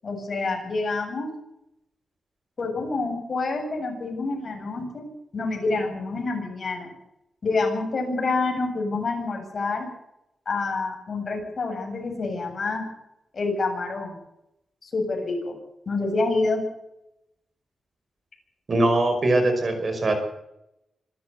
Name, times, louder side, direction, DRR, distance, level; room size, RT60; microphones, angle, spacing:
voice 1, 0.0-1.3 2.6-5.1 5.3-6.9 7.4-9.9 10.5-12.8 13.3-14.2 14.8-15.6 15.9-16.6, left 3 dB, 45° left, 2 dB, 7.6 m, -27 dB
voice 2, 18.7-20.1, right 2 dB, 40° right, 7 dB, 5.3 m, -21 dB
25.5 x 13.5 x 8.0 m, 0.86 s
wide cardioid pair, 140°, 0 cm